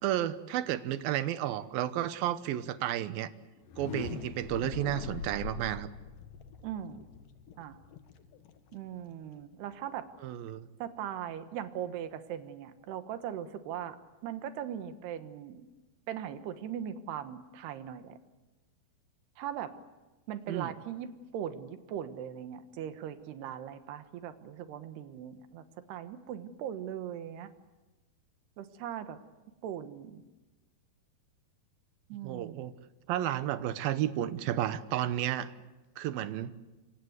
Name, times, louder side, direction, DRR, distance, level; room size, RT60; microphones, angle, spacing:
voice 1, 0.0-3.3 3.8-5.9 10.2-10.7 20.5-20.7 32.2-32.7 33.1-35.5 36.0-36.6, right 12 dB, 75° right, 13 dB, 2.7 m, -32 dB
sound 1, 3.6-9.4, left 7 dB, 65° left, 2.8 m, -43 dB
voice 2, 6.6-7.1 7.6-7.8 8.7-10.1 10.8-14.0 14.2-15.7 16.1-18.2 19.4-19.7 20.3-21.1 21.3-27.5 28.6-29.2 29.6-30.2 32.1-32.6, right 10 dB, 90° right, 9 dB, 3.4 m, -39 dB
28.0 x 25.5 x 8.1 m, 1.1 s
omnidirectional pair, 4.5 m